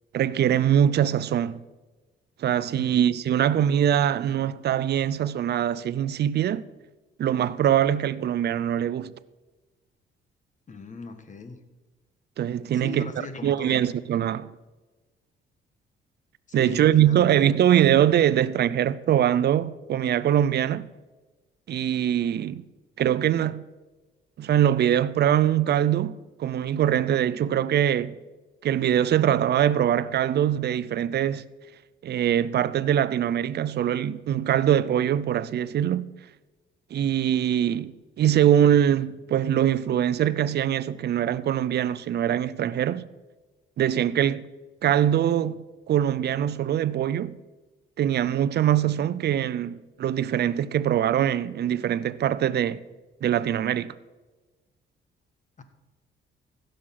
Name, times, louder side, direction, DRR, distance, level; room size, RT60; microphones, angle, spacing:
voice 1, 0.1-1.6 2.4-6.6 7.2-9.1 12.4-14.5 16.5-20.9 21.7-22.7 23.0-23.6 24.4-28.1 28.6-31.4 32.0-36.1 36.9-43.1 43.8-44.4 44.8-47.4 48.0-52.8 53.2-53.9, right 10 dB, 55° right, 0.6 m, -23 dB
voice 2, 2.8-3.1 10.7-11.6 12.7-13.8 16.5-17.6 55.6-55.7, left 4 dB, 40° left, 1.5 m, -39 dB
15.5 x 6.5 x 5.8 m
cardioid pair, 90°, 20 cm